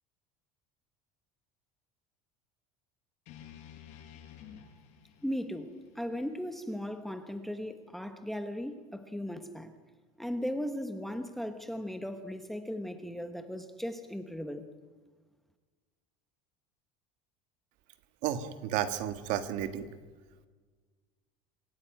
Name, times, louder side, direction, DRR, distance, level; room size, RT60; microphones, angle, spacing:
sound 1, 3.3-7.4, left 9 dB, 50° left, 4.9 m, -53 dB
voice 1, 5.2-9.7 10.2-14.7, equal, ahead, 8 dB, 1.0 m, -37 dB
voice 2, 18.2-19.9, right 10 dB, 55° right, 10 dB, 1.8 m, -32 dB
26.5 x 16.5 x 9.1 m, 1.5 s
cardioid pair, 180°, 16 cm